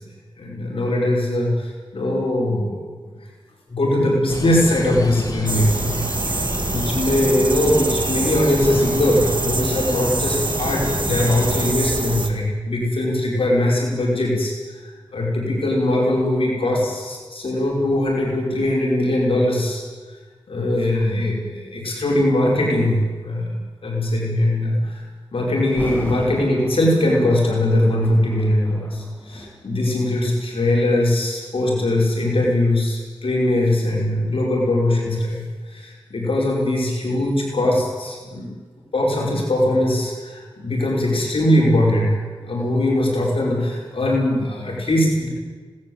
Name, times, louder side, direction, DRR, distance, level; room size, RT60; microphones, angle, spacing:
voice 1, 0.4-2.8 3.7-6.3 6.7-14.5 14.8-19.8 20.5-23.5 23.8-25.0 25.3-38.5 38.9-45.3, left 1 dB, 75° left, -3 dB, 5.9 m, -21 dB
sound 1, 4.3-11.7, left 2 dB, 40° left, 2.9 m, -29 dB
sound 2, 5.5-12.3, right 3 dB, 55° right, 2.1 m, -26 dB
Thunder, 25.7-30.6 31.3-31.5 32.2-35.0 35.3-35.4, equal, 20° left, 7.4 m, -37 dB
19.5 x 18.5 x 8.2 m, 1.4 s
cardioid pair, 55°, 10 cm